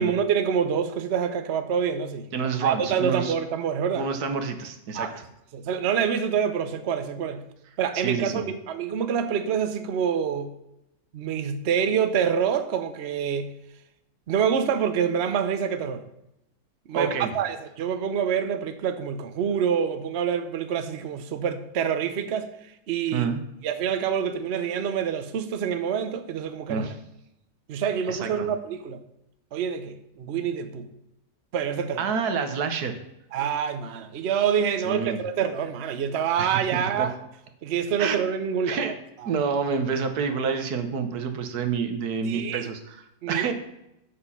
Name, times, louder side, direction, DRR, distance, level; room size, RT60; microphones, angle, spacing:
voice 1, 0.0-2.3 2.6-4.1 4.9-5.2 5.5-7.4 7.8-10.5 11.1-13.5 14.3-16.0 16.9-23.3 23.6-26.9 27.7-29.0 29.5-30.9 31.5-32.0 33.3-37.2 37.6-38.9 39.2-39.4 42.2-42.7 43.2-43.5, right 7 dB, 55° right, 9 dB, 0.9 m, -26 dB
voice 2, 2.3-3.3 3.9-5.1 7.9-8.4 16.9-17.3 23.1-23.4 26.7-26.9 28.1-28.5 32.0-33.0 34.8-35.2 36.4-37.1 38.0-38.2 38.7-38.9 39.2-43.5, right 5 dB, 85° right, 8 dB, 1.5 m, -28 dB
7.7 x 6.3 x 5.6 m, 0.84 s
omnidirectional pair, 1.6 m